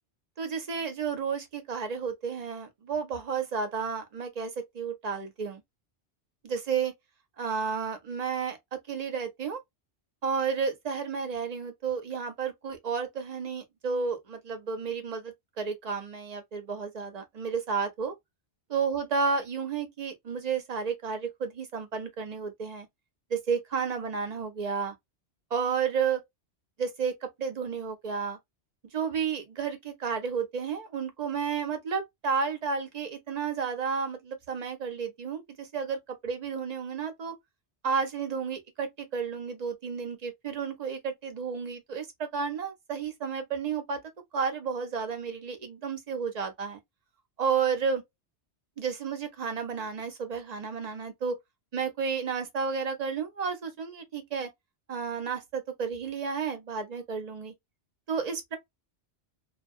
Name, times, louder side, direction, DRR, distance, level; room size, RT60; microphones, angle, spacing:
voice 1, 0.4-5.6 6.4-6.9 7.4-8.6 8.9-9.6 10.2-18.1 18.7-22.9 23.3-24.9 25.5-26.2 26.8-28.4 28.9-37.3 37.8-44.0 44.3-46.8 47.4-48.0 48.8-51.4 51.7-54.5 54.9-57.5 58.1-58.6, right 6 dB, 45° right, 0.6 m, -32 dB
2.3 x 2.2 x 2.4 m
omnidirectional pair, 1.2 m